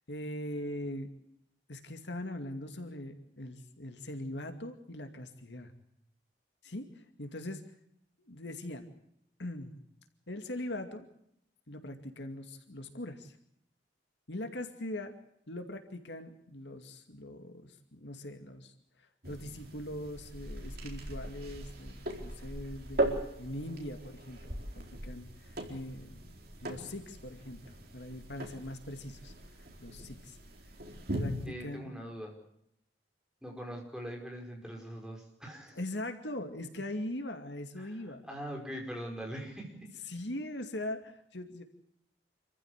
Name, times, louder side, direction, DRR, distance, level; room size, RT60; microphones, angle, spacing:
voice 1, 0.1-1.1 1.7-5.7 6.6-7.6 8.2-8.8 9.4-9.8 10.3-11.1 11.7-13.4 14.3-15.1 15.5-27.6 27.9-30.4 31.2-31.9 35.7-38.2 40.1-41.6, left 1 dB, 70° left, 6 dB, 2.4 m, -41 dB
sound 1, 19.2-31.5, right 1 dB, 55° right, 4.1 m, -39 dB
voice 2, 31.5-32.4 33.4-35.8 37.8-38.0 38.3-39.9, equal, 5° right, 0 dB, 5.2 m, -42 dB
27.0 x 15.0 x 8.2 m, 0.74 s
head